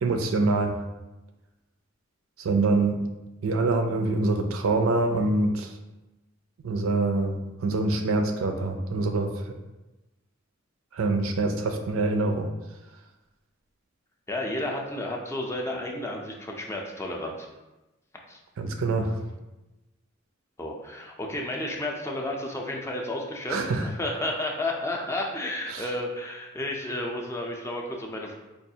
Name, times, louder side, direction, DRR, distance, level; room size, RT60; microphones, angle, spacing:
voice 1, 0.0-0.8 2.4-3.0 3.4-5.7 6.6-9.3 10.9-12.5 18.6-19.2 23.5-23.9 25.7-25.9, right 3 dB, 90° right, 5 dB, 0.4 m, -25 dB
voice 2, 14.3-17.5 18.3-18.4 20.6-28.3, left 1 dB, 15° left, 0 dB, 0.4 m, -32 dB
4.5 x 2.4 x 2.7 m, 1.0 s
head